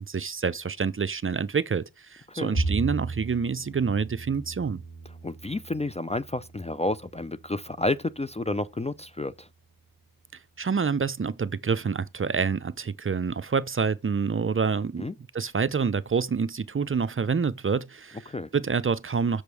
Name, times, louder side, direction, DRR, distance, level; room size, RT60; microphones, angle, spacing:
voice 1, 0.1-4.8 10.6-15.1 15.3-19.4, right 5 dB, 35° right, 0.6 m, -27 dB
Bowed string instrument, 2.5-8.9, right 3 dB, 75° left, 5.7 m, -36 dB
voice 2, 5.2-9.5 15.0-15.1 18.3-18.5, left 2 dB, 20° left, 0.4 m, -30 dB
7.0 x 5.2 x 4.8 m
cardioid pair, 50°, 36 cm